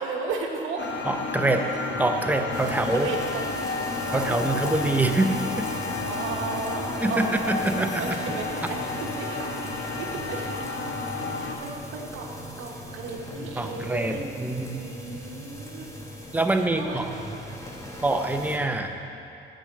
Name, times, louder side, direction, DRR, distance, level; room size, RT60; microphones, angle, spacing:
voice 1, 0.0-0.9 2.7-3.5 3.8-4.8 5.8-10.7 11.3-17.2, right 4 dB, 85° right, 0 dB, 1.2 m, -35 dB
sound 1, 0.8-11.6, left 3 dB, 65° left, 1.1 m, -31 dB
voice 2, 1.1-3.1 4.1-5.7 7.0-7.9 13.6-14.8 16.3-17.1 18.0-18.9, right 2 dB, 10° right, 5 dB, 0.7 m, -25 dB
sound 2, 1.8-19.0, equal, 85° left, 2.0 m, -43 dB
sound 3, 2.5-18.6, left 1 dB, 15° left, 1.3 m, -41 dB
7.6 x 5.5 x 7.4 m, 2.8 s
cardioid pair, 90°, 20 cm